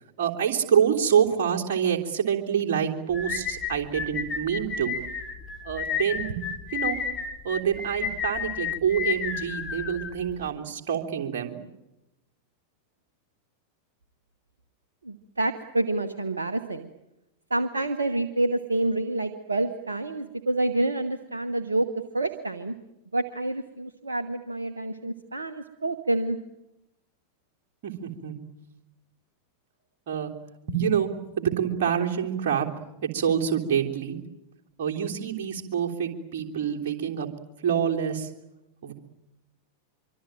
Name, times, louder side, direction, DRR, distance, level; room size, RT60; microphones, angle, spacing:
voice 1, 0.2-4.9 5.6-6.4 6.7-7.0 7.4-11.6 27.8-28.4 30.1-30.3 30.7-31.1 31.4-32.7 33.0-34.2 34.8-37.3 37.6-38.3 38.8-38.9, right 8 dB, 50° right, 1 dB, 3.4 m, -26 dB
sound 1, 3.1-10.5, left 7 dB, 20° left, 3.4 m, -32 dB
voice 2, 15.0-16.9 17.5-21.9 22.1-22.7 23.1-26.4, right 2 dB, 75° right, 9 dB, 1.1 m, -28 dB
25.0 x 24.5 x 9.1 m, 0.92 s
figure-of-eight pair, 90°, 0 cm